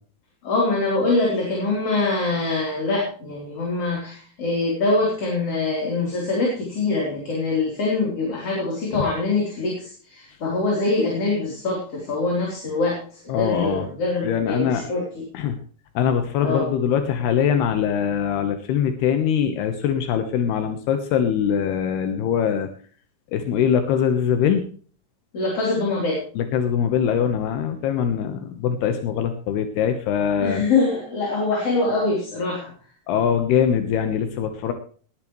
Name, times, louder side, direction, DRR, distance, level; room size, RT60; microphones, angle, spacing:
voice 1, 0.4-15.2 16.4-16.7 25.3-26.2 30.4-32.7, left 3 dB, 35° left, -2 dB, 4.5 m, -24 dB
voice 2, 13.3-13.8 14.2-14.8 15.3-15.6 16.0-22.7 23.3-24.7 26.4-30.6 33.1-34.7, left 8 dB, 80° left, 8 dB, 3.2 m, -22 dB
20.5 x 11.0 x 3.2 m, 0.43 s
omnidirectional pair, 4.7 m